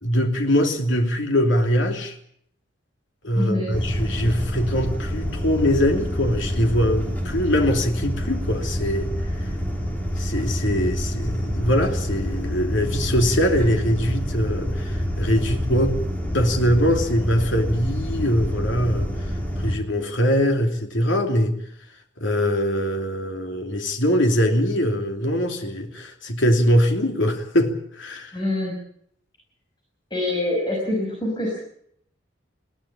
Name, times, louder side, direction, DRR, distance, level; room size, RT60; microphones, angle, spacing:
voice 1, 0.0-2.2 3.2-9.1 10.2-16.0 16.3-21.5 22.2-28.4, equal, 75° left, 4 dB, 3.0 m, -22 dB
voice 2, 3.3-3.7 28.3-28.8 30.1-31.6, left 1 dB, 25° left, -1 dB, 6.1 m, -25 dB
sound 1, 3.7-19.8, equal, 10° left, 3.6 m, -27 dB
20.5 x 16.5 x 8.7 m, 0.69 s
head